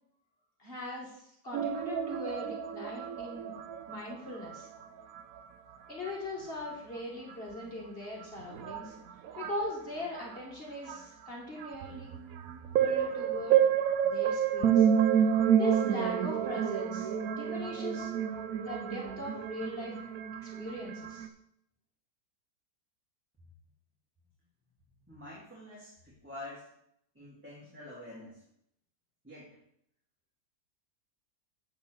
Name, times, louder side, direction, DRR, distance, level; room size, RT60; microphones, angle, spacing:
voice 1, 0.6-3.5 3.9-4.7 5.9-9.0 9.4-12.1 12.8-13.6 14.0-14.9 15.6-18.1 18.5-19.9 20.4-21.3, left 1 dB, 35° left, -3 dB, 2.3 m, -40 dB
sound 1, 1.5-4.1 4.4-4.8 5.2-5.4 6.1-6.2 7.3-7.4 8.2-8.3 8.5-9.6 10.1-10.4 10.9-11.0 11.6-21.3, right 8 dB, 65° right, 1.1 m, -29 dB
voice 2, 25.0-26.6 27.1-28.4 29.2-29.5, left 1 dB, 5° right, -8 dB, 2.4 m, -47 dB
8.6 x 7.7 x 4.6 m, 0.74 s
omnidirectional pair, 1.7 m